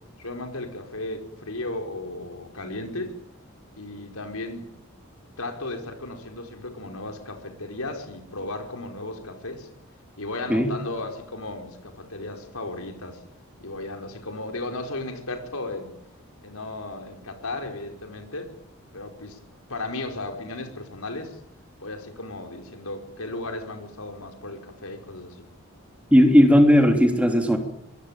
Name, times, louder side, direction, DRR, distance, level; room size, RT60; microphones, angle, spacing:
voice 1, 0.2-3.2 3.8-4.7 5.4-9.7 10.2-13.2 13.6-15.9 16.4-18.5 18.9-19.4 19.7-21.4 21.8-25.4, left 2 dB, 90° left, 5 dB, 5.1 m, -35 dB
voice 2, 26.1-27.6, equal, 5° right, 4 dB, 3.2 m, -16 dB
24.0 x 22.0 x 9.2 m, 0.81 s
head